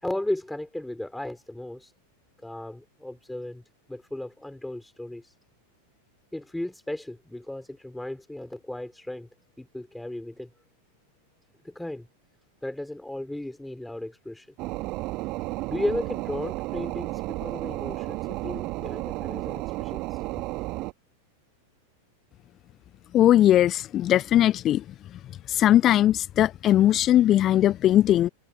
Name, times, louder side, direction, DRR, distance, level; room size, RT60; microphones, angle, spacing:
voice 1, 0.0-1.9 2.4-3.6 3.9-5.3 6.3-9.3 9.6-10.5 11.6-12.1 12.6-14.5 15.7-20.2, left 1 dB, 5° left, 5.6 m, -35 dB
sound 1, 14.6-20.9, right 21 dB, 40° right, 2.9 m, -32 dB
voice 2, 23.1-24.8 25.5-28.3, left 12 dB, 30° left, 0.7 m, -19 dB
figure-of-eight pair, 90°, 0 cm